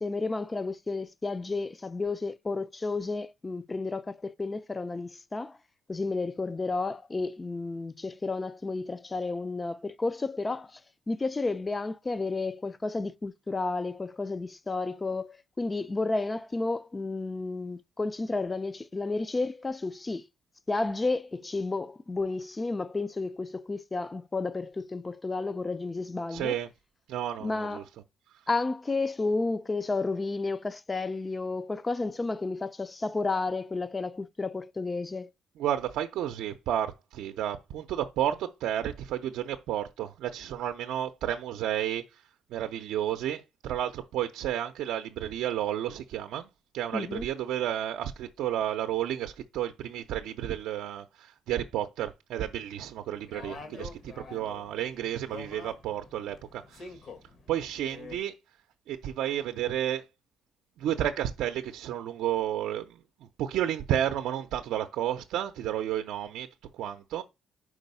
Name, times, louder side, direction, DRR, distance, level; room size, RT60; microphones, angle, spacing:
voice 1, 0.0-5.6 5.9-10.8 11.1-20.3 20.7-26.6 27.4-27.8 28.5-35.3 46.9-47.2, left 3 dB, 25° left, 0.4 m, -32 dB
voice 2, 26.3-26.7 27.1-27.8 35.6-42.2 42.5-46.5 46.7-56.9 57.5-58.3 58.9-60.0 60.8-66.5 66.7-67.2, right 11 dB, 85° right, 0.5 m, -32 dB
sound 1, 53.1-58.2, left 4 dB, 60° left, 1.5 m, -47 dB
4.8 x 4.5 x 5.4 m
cardioid pair, 90°, 0 cm